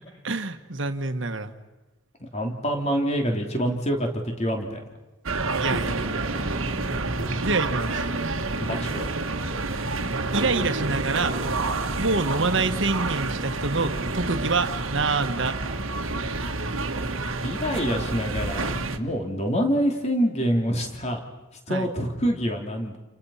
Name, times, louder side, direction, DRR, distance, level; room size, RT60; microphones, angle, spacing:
voice 1, 0.0-1.5 5.6-6.5 7.4-8.1 10.3-11.4 12.0-15.6 21.7-21.9, right 3 dB, 65° right, 8 dB, 1.6 m, -27 dB
voice 2, 2.2-4.8 7.2-7.4 8.6-9.1 17.4-21.2 21.7-23.0, equal, 30° left, 3 dB, 3.3 m, -26 dB
sound 1, 5.3-19.0, right 3 dB, 80° right, 1.7 m, -28 dB
30.0 x 29.5 x 5.8 m, 1.1 s
head